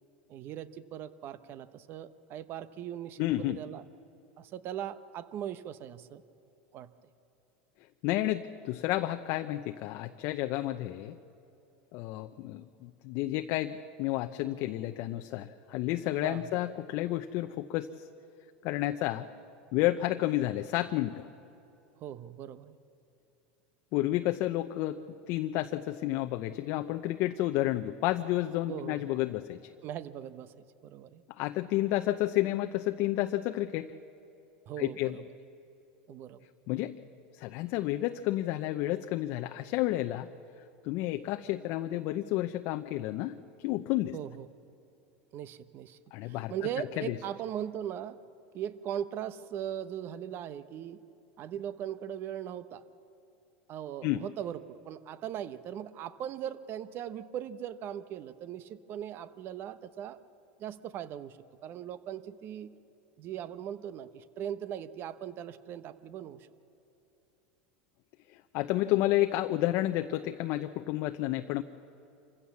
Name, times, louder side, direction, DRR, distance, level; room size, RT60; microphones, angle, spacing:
voice 1, 0.3-3.8 4.4-6.2 6.7-6.9 16.2-16.6 22.0-22.7 28.7-29.1 29.8-31.2 34.7-35.2 36.1-36.4 44.1-44.5 45.3-46.0 46.2-48.2 48.5-51.0 51.4-52.8 53.7-60.2 60.6-62.7 63.2-66.5, right 10 dB, 45° right, 14 dB, 1.0 m, -39 dB
voice 2, 3.2-3.6 8.0-11.2 11.9-18.0 18.6-19.3 19.7-21.3 23.9-25.0 25.3-29.7 31.4-33.9 34.8-35.2 36.7-37.0 37.3-40.3 40.8-44.1 46.1-46.5 47.0-47.2 54.0-54.2 68.5-71.6, left 15 dB, 55° left, 7 dB, 0.7 m, -31 dB
26.5 x 15.5 x 7.2 m, 2.9 s
supercardioid pair, 110°, 5 cm